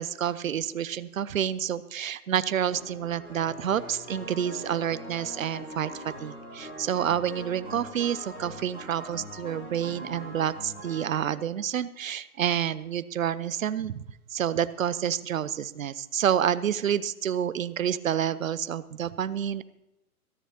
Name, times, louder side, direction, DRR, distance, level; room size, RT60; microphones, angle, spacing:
voice 1, 0.0-14.0 14.3-19.6, right 9 dB, 60° right, 17 dB, 0.7 m, -29 dB
sound 1, 2.6-11.3, equal, 85° left, 3.2 m, -42 dB
26.0 x 10.0 x 2.8 m, 0.93 s
figure-of-eight pair, 115°, 44 cm